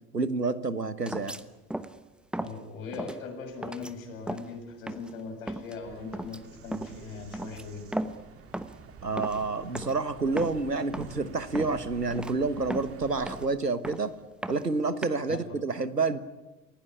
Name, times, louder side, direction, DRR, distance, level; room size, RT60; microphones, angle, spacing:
voice 1, 0.1-1.4 9.0-14.1 14.5-16.2, right 3 dB, 90° right, 14 dB, 1.4 m, -29 dB
sound 1, 1.1-1.4 1.7-2.0 2.3-2.6 2.9-3.2 3.6-3.9 4.3-4.5 4.9-5.2 5.5-5.8 6.1-6.4 6.7-7.0 7.3-8.3 8.5-8.9 9.2-9.5 9.7-10.0 10.3-10.6 10.9-11.2 11.6-11.8 12.1-12.3 12.7-13.5 13.8-14.1 14.4-15.1, right 1 dB, ahead, 1.0 m, -36 dB
voice 2, 2.4-7.9 15.3-15.5, left 4 dB, 60° left, 3 dB, 7.7 m, -40 dB
Bird vocalization bird call bird song, 5.8-13.4, right 5 dB, 30° right, 2.9 m, -48 dB
28.5 x 17.5 x 10.0 m, 1.1 s
figure-of-eight pair, 80°, 47 cm